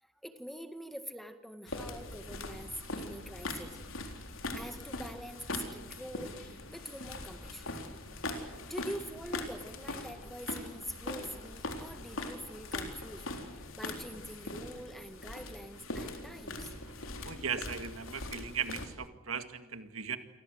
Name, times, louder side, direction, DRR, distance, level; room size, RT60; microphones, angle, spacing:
voice 1, 0.0-3.8 4.5-7.8 8.3-16.7, equal, ahead, 8 dB, 1.8 m, -45 dB
sound 1, 1.7-18.9, left 2 dB, 70° left, 3.9 m, -41 dB
voice 2, 17.2-20.2, right 7 dB, 80° right, 9 dB, 2.0 m, -37 dB
29.5 x 23.5 x 8.0 m, 1.0 s
head